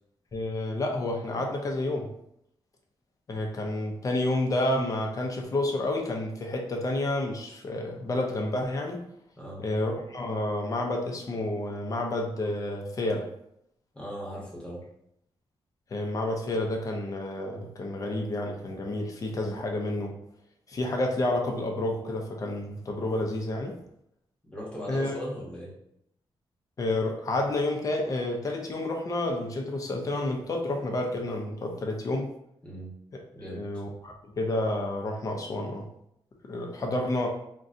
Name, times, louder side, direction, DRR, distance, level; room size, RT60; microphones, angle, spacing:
voice 1, 0.3-2.1 3.3-9.0 9.6-13.3 15.9-20.1 20.7-23.8 24.9-25.1 26.8-32.3 33.5-35.9 36.4-37.3, left 1 dB, 35° left, 2 dB, 0.5 m, -30 dB
voice 2, 13.9-14.8 24.4-25.7 32.6-32.9 33.3-33.6, equal, 10° left, -6 dB, 1.0 m, -38 dB
3.7 x 2.2 x 2.6 m, 0.76 s
wide cardioid pair, 140°, 9 cm